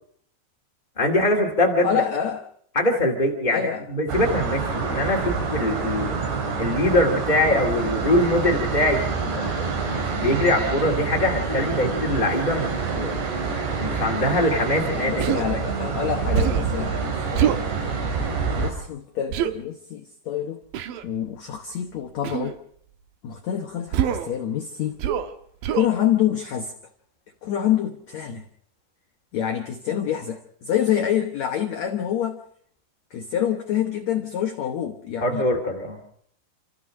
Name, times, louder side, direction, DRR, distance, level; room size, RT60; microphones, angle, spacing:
voice 1, 1.0-1.9 2.7-6.2 6.6-12.7 12.9-13.1 13.8-15.3 15.5-15.6 35.2-36.0, left 1 dB, 20° left, 0 dB, 1.1 m, -23 dB
voice 2, 1.8-2.4 3.5-3.8 14.9-17.6 18.6-20.6 21.0-22.6 23.2-25.0 25.7-26.7 27.4-28.4 29.3-32.4 33.1-35.4, left 10 dB, 85° left, 4 dB, 1.5 m, -26 dB
sound 1, 4.1-18.7, right 5 dB, 90° right, 5.5 m, -27 dB
Human voice, 15.2-15.5 16.3-16.7 17.3-17.7 19.3-19.5 20.7-21.0 22.2-22.5 23.9-24.3 25.0-25.3 25.6-25.9, right 10 dB, 70° right, 2.3 m, -24 dB
28.0 x 14.5 x 6.3 m, 0.65 s
omnidirectional pair, 4.9 m